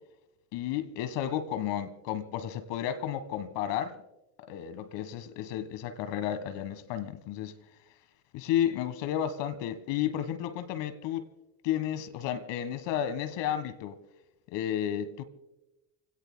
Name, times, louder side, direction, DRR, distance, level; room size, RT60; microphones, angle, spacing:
voice 1, 0.5-4.0 4.5-7.5 8.3-11.3 11.6-14.0 14.5-15.2, left 10 dB, 70° left, 1.6 m, -32 dB
29.5 x 17.5 x 2.2 m
hypercardioid pair, 60°, 44 cm